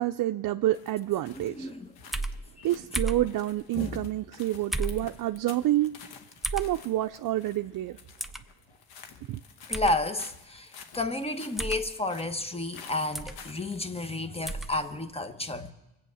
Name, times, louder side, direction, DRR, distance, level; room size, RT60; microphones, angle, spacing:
voice 1, 0.0-1.7 2.6-5.9 6.5-8.0 9.3-9.4, right 14 dB, 65° right, 0.5 m, -28 dB
sound 1, 0.7-13.8, left 6 dB, 85° left, 1.2 m, -51 dB
voice 2, 1.4-1.9 2.6-2.7 3.7-4.0 9.7-10.7 10.9-15.7, left 2 dB, 15° left, 1.0 m, -31 dB
sound 2, 2.1-2.4 2.9-3.3 4.7-5.0 6.4-6.7 8.2-8.4 9.7-10.0 11.6-11.8 13.1-13.4 14.4-14.7, right 2 dB, ahead, 0.6 m, -31 dB
24.0 x 8.5 x 6.3 m
cardioid pair, 90°, 36 cm